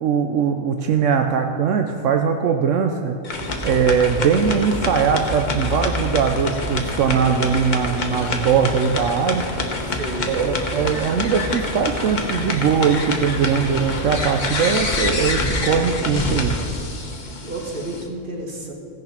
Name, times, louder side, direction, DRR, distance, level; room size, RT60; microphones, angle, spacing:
voice 1, 0.0-3.2 3.6-9.4 10.3-16.6, right 7 dB, 80° right, 5 dB, 1.0 m, -20 dB
sound 1, 3.2-18.1, left 3 dB, 40° left, 1.1 m, -27 dB
sound 2, 3.4-14.6, right 1 dB, 20° right, 1.3 m, -33 dB
voice 2, 9.7-10.4 17.4-18.7, right 2 dB, 45° right, 1 dB, 1.7 m, -31 dB
16.0 x 6.7 x 5.7 m, 2.5 s
omnidirectional pair, 1.3 m